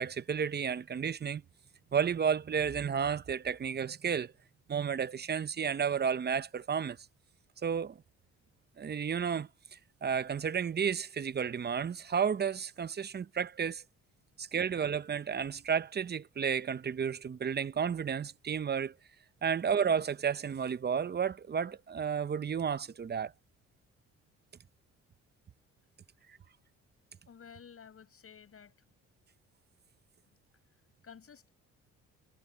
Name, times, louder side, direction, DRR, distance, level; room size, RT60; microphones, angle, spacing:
voice 1, 0.0-1.4 1.9-4.3 4.7-7.0 7.6-8.0 8.8-13.8 14.4-18.9 19.4-23.3 26.3-26.4, right 7 dB, 35° right, 0.7 m, -32 dB
voice 2, 27.3-28.8 30.7-31.5, left 7 dB, 50° left, 7.9 m, -53 dB
cardioid pair, 90°, 30 cm